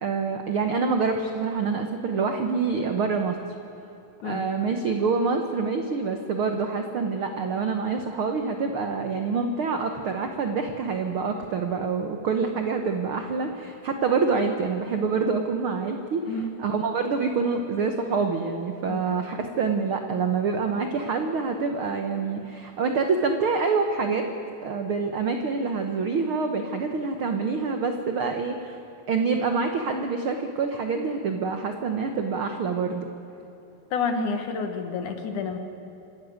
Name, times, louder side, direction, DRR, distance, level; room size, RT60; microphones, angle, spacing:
voice 1, 0.0-3.4 4.2-24.3 24.6-28.8 29.1-33.1, right 4 dB, 85° right, 5 dB, 1.1 m, -26 dB
voice 2, 33.9-35.6, left 4 dB, 65° left, 6 dB, 2.8 m, -29 dB
26.5 x 13.0 x 9.4 m, 2.9 s
omnidirectional pair, 4.1 m